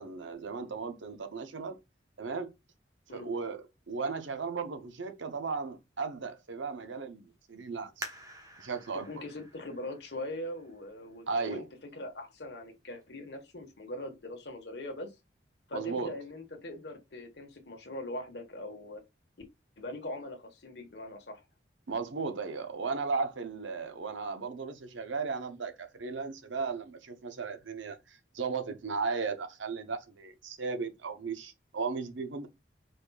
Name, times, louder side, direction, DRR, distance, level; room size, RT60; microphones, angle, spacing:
voice 1, 0.0-1.8 2.2-2.5 3.1-7.2 7.5-8.1 8.6-9.2 11.3-11.7 15.7-16.1 21.9-32.5, right 4 dB, 85° right, 0.8 m, -36 dB
sound 1, 8.0-11.4 12.0-12.1 12.7-13.1 13.5-13.6, right 1 dB, 20° right, 1.0 m, -47 dB
voice 2, 9.0-15.1 15.7-19.0 19.8-21.4, left 1 dB, 65° left, 1.3 m, -41 dB
5.2 x 4.1 x 2.3 m
head